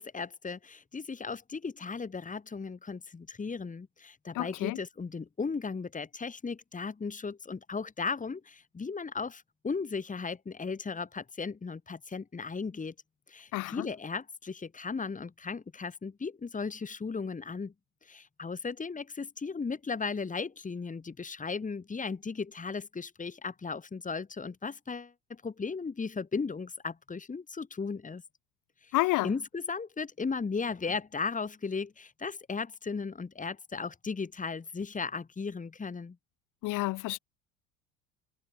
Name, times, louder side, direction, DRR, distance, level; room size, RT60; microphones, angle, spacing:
voice 1, 0.0-12.9 13.3-17.7 18.0-28.2 28.8-28.9 29.2-36.2, left 4 dB, 20° left, 5.5 m, -36 dB
voice 2, 4.3-4.8 13.5-13.9 28.9-29.3 36.6-37.2, left 19 dB, 55° left, 7.2 m, -29 dB
figure-of-eight pair, 65°, 37 cm